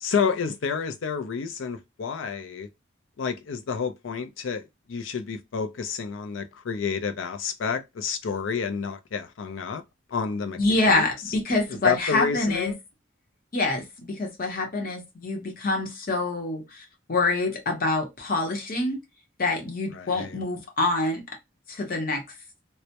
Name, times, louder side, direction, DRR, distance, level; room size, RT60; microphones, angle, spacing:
voice 1, 0.0-2.7 3.2-9.8 10.1-10.6 10.8-11.1 11.8-12.8 19.9-20.4, left 6 dB, 80° left, 0.4 m, -29 dB
voice 2, 10.6-12.7 13.5-19.0 19.4-21.2 21.7-22.2, left 2 dB, 45° left, 0.8 m, -26 dB
2.2 x 2.0 x 2.8 m
head